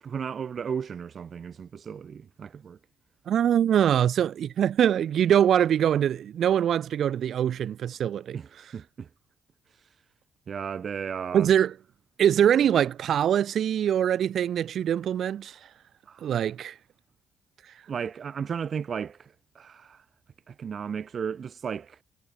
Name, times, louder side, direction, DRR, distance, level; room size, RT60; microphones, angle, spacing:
voice 1, 0.0-2.8 8.3-9.1 9.7-9.9 10.5-11.5 16.1-16.3 17.9-20.0 20.5-22.0, right 7 dB, 50° right, 2.9 m, -35 dB
voice 2, 3.3-8.4 11.3-11.7 12.2-15.5 16.2-16.7, right 9 dB, 65° right, 4.1 m, -23 dB
cardioid pair, 90°, 0 cm